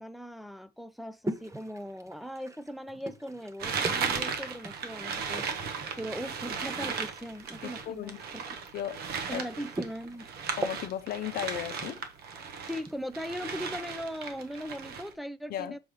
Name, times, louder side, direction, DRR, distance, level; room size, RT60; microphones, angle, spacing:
voice 1, 0.0-5.5 6.0-8.2 8.5-8.6 9.3-10.3 12.7-15.8, equal, ahead, 0.5 m, -39 dB
sound 1, 1.2-13.0, right 1 dB, 20° right, 0.9 m, -43 dB
sound 2, 3.6-12.9 13.1-15.1, right 6 dB, 70° right, 1.2 m, -36 dB
voice 2, 7.6-8.2 8.7-9.0 9.3-9.5 10.5-12.0 15.5-15.8, left 11 dB, 65° left, 0.6 m, -35 dB
6.9 x 3.1 x 5.4 m
cardioid pair, 110°, 17 cm